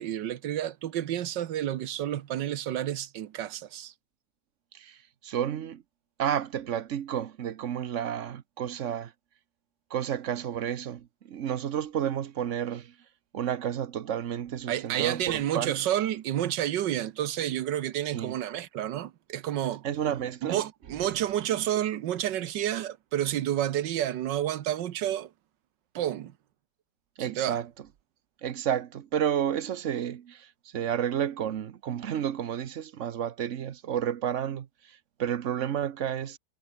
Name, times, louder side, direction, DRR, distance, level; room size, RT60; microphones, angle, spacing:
voice 1, 0.0-3.9 14.7-19.8 20.4-25.3 25.9-26.3 27.3-27.6, right 11 dB, 75° right, 1.5 m, -30 dB
voice 2, 4.7-5.8 6.2-9.1 9.9-12.9 13.3-15.8 18.0-18.4 19.8-20.6 27.2-27.7 28.4-36.4, right 9 dB, 55° right, 0.9 m, -31 dB
omnidirectional pair, 2.0 m